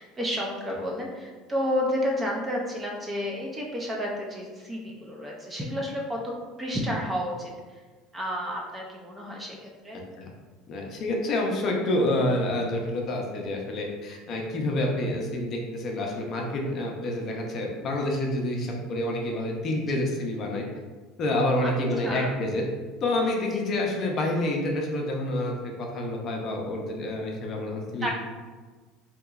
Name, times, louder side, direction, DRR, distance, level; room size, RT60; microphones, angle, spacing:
voice 1, 0.0-6.3 6.6-7.8 8.1-10.0 16.6-16.8 19.9-20.0 21.6-22.3 27.0-27.1 28.0-28.1, equal, 15° right, -1 dB, 0.4 m, -31 dB
voice 2, 10.7-20.6 21.2-22.6 23.0-28.1, left 1 dB, 35° left, 0 dB, 0.5 m, -28 dB
3.7 x 2.9 x 2.4 m, 1.4 s
cardioid pair, 160°, 0 cm